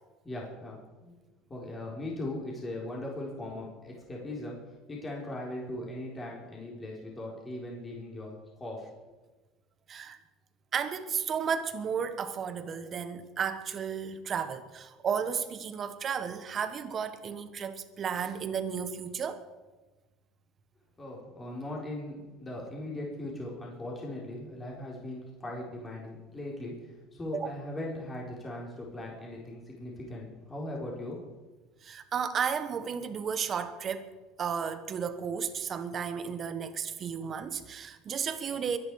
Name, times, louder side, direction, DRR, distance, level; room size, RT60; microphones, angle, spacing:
voice 1, 0.2-1.1 1.5-4.6 4.9-8.9 21.0-31.2, left 1 dB, 20° left, 4.3 m, -39 dB
voice 2, 10.7-19.4 27.3-27.5 31.8-34.1 34.4-38.8, right 7 dB, 35° right, 1.3 m, -33 dB
23.0 x 10.5 x 4.9 m
supercardioid pair, 125°, 0 cm